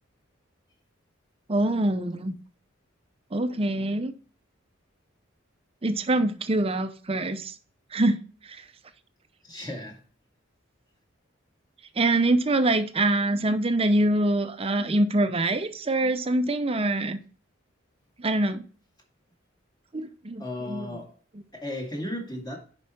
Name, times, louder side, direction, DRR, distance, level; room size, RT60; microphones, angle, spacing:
voice 1, 1.5-2.3 3.3-4.1 5.8-7.5 7.9-8.2 12.0-17.2 18.2-18.6 19.9-20.9, right 2 dB, 30° right, 0.7 m, -24 dB
voice 2, 9.4-10.0 20.4-21.1 21.5-22.6, left 1 dB, 20° left, 1.9 m, -35 dB
7.2 x 5.4 x 4.3 m
head